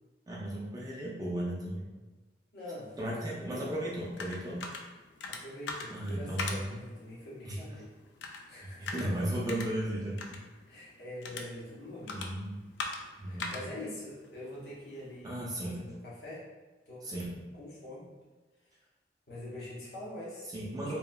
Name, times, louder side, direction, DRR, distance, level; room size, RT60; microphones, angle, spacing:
voice 1, 0.3-1.9 3.0-4.7 5.9-6.8 7.4-7.6 8.8-10.4 12.1-12.6 13.2-13.6 15.2-15.8 17.0-17.3 20.5-21.0, right 1 dB, 20° right, -5 dB, 0.4 m, -35 dB
voice 2, 2.5-3.9 5.3-7.9 8.5-9.2 10.7-12.2 13.3-16.5 16.9-17.1 17.5-18.1 19.3-20.5 20.8-21.0, left 1 dB, 65° left, -7 dB, 0.8 m, -44 dB
sound 1, 3.6-15.2, left 3 dB, 90° left, 0.3 m, -43 dB
2.9 x 2.1 x 2.2 m, 1.2 s
head